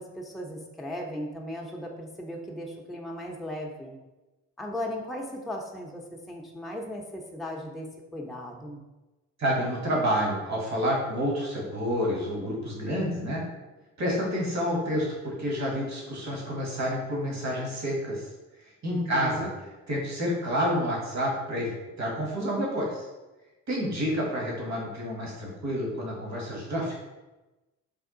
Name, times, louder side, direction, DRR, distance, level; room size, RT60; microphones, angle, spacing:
voice 1, 0.0-4.0 4.6-7.9 8.1-8.8 18.9-19.6, equal, ahead, 0 dB, 0.6 m, -37 dB
voice 2, 9.4-13.4 14.0-18.3 18.6-19.5 19.9-23.1 23.7-27.0, equal, 50° right, -2 dB, 1.5 m, -29 dB
3.5 x 2.3 x 3.7 m, 1.1 s
supercardioid pair, 55°, 36 cm